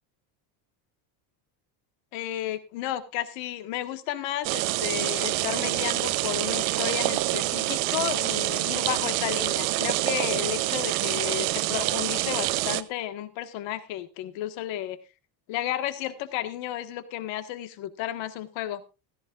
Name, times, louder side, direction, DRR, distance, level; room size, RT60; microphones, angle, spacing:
voice 1, 2.1-15.0 15.5-18.8, left 12 dB, 70° left, 10 dB, 1.6 m, -32 dB
sound 1, 4.4-12.8, right 18 dB, 90° right, 1.0 m, -26 dB
16.0 x 14.0 x 2.5 m, 0.28 s
cardioid pair, 120°, 47 cm